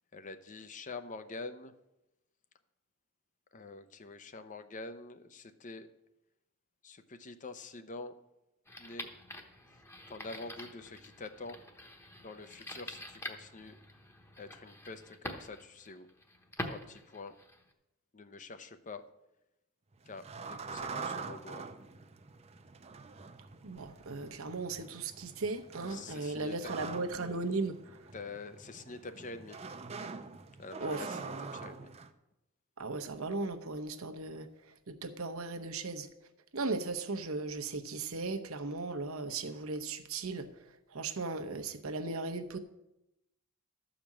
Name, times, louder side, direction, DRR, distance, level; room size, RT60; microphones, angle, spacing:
voice 1, 0.1-1.7 3.5-5.9 6.8-8.1 8.8-9.1 10.1-11.6 12.2-13.8 14.4-16.1 16.7-17.4 18.1-19.0 20.1-21.7 25.9-26.7 28.1-29.6 30.6-31.9, left 3 dB, 35° left, 0.7 m, -46 dB
sound 1, 8.7-17.7, left 1 dB, 10° left, 1.0 m, -46 dB
sound 2, 20.0-32.1, right 4 dB, 30° right, 0.6 m, -45 dB
voice 2, 23.6-27.8 30.8-31.2 32.8-34.5 34.9-36.1 36.5-40.5 40.9-42.6, right 3 dB, 75° right, 0.9 m, -37 dB
13.0 x 5.1 x 7.3 m
head